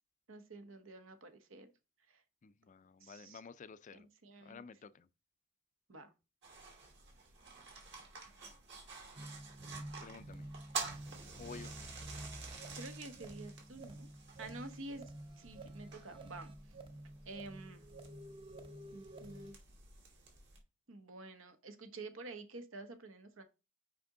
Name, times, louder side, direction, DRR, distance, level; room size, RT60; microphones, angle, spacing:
voice 1, 0.3-1.7 2.1-2.2 3.0-3.4 3.9-4.6 5.9-6.1 12.8-14.1 14.4-15.0 15.4-16.5 17.2-17.8 18.9-19.6 20.9-23.4, right 2 dB, 80° right, 1.1 m, -49 dB
voice 2, 2.4-4.1 4.4-5.1 10.0-10.5 11.4-11.7 14.4-14.6, left 5 dB, 40° left, 0.4 m, -52 dB
sound 1, 6.4-20.6, right 5 dB, 60° right, 2.5 m, -50 dB
sound 2, 9.2-19.5, right 1 dB, 25° right, 0.7 m, -50 dB
5.9 x 5.1 x 3.8 m
head